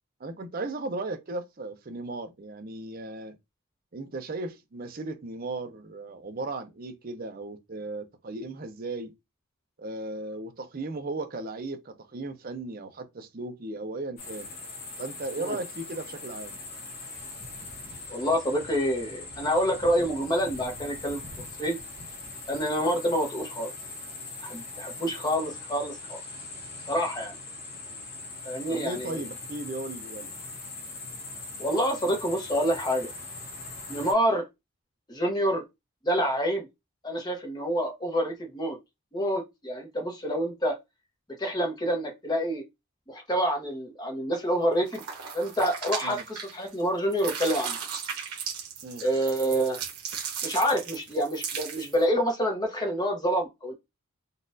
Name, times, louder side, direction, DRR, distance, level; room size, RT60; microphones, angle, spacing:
voice 1, 0.2-3.4 3.9-9.1 9.8-14.5 15.0-16.6 28.7-30.3 46.0-46.2 48.8-49.0, right 2 dB, 40° right, 0.5 m, -36 dB
sound 1, 14.2-34.1, left 3 dB, 45° left, 1.0 m, -41 dB
voice 2, 18.1-21.2 21.6-21.8 22.5-23.7 24.5-26.2 26.9-27.4 28.4-29.2 31.6-33.1 33.9-34.4 35.1-35.6 36.0-36.7 37.0-38.8 39.1-40.7 41.4-42.6 43.1-45.0 45.3-47.8 49.0-49.8 50.4-53.7, equal, 20° left, 0.8 m, -27 dB
sound 2, 44.9-46.8 47.1-52.0, right 7 dB, 90° right, 0.9 m, -36 dB
3.9 x 2.4 x 2.6 m
head